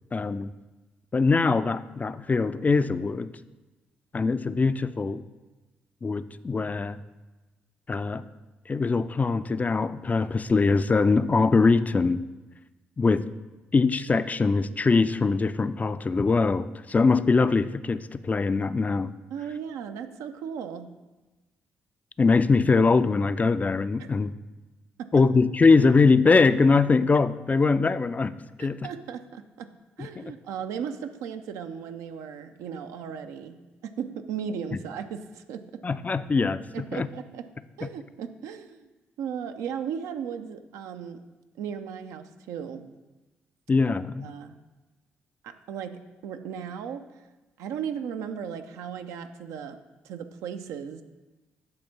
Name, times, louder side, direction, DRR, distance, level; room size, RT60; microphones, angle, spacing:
voice 1, 0.1-0.5 1.1-3.3 4.1-5.2 6.0-7.0 7.9-8.2 8.7-12.2 13.0-13.3 13.7-19.1 22.2-24.3 25.1-28.9 30.0-30.3 35.8-37.1 37.8-37.9 43.7-44.3, left 4 dB, 30° left, 13 dB, 0.3 m, -22 dB
voice 2, 19.3-20.9 25.0-25.1 28.6-29.7 30.0-35.8 36.7-37.4 37.8-38.9 39.2-41.2 41.6-42.9 44.2-44.6 45.4-47.1 47.6-49.8 50.0-51.0, right 7 dB, 70° right, 8 dB, 0.5 m, -36 dB
7.7 x 3.5 x 5.7 m, 1.1 s
hypercardioid pair, 40°, 5 cm